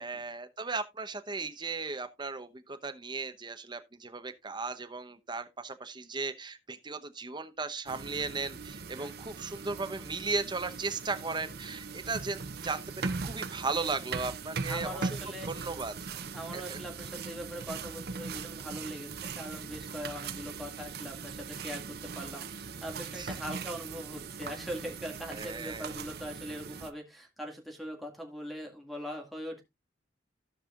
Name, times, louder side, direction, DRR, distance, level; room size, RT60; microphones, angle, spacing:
voice 1, 0.0-15.2 15.5-16.1 16.5-16.8 23.1-23.3 25.3-25.9, right 3 dB, 25° right, 0.9 m, -36 dB
sound 1, 7.9-26.9, right 5 dB, 60° right, 0.7 m, -40 dB
voice 2, 14.7-15.5 16.3-29.6, equal, ahead, 2.1 m, -41 dB
16.5 x 5.5 x 2.4 m
head